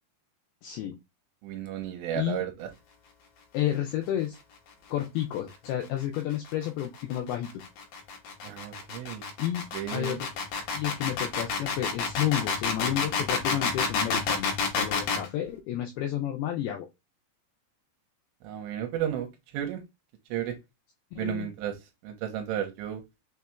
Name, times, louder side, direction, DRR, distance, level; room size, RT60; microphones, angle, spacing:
voice 1, 0.6-1.0 2.1-2.4 3.5-4.4 4.9-7.6 9.4-9.6 9.9-10.3 10.7-16.9 21.1-21.5, left 12 dB, 90° left, 2.2 m, -31 dB
voice 2, 1.4-2.7 8.4-9.2 9.7-10.2 18.4-19.3 19.5-19.8 20.3-20.6 21.2-21.7 22.0-23.0, right 10 dB, 85° right, 2.9 m, -33 dB
sound 1, 6.0-15.3, left 5 dB, 65° left, 2.8 m, -29 dB
6.6 x 2.9 x 2.3 m
omnidirectional pair, 5.1 m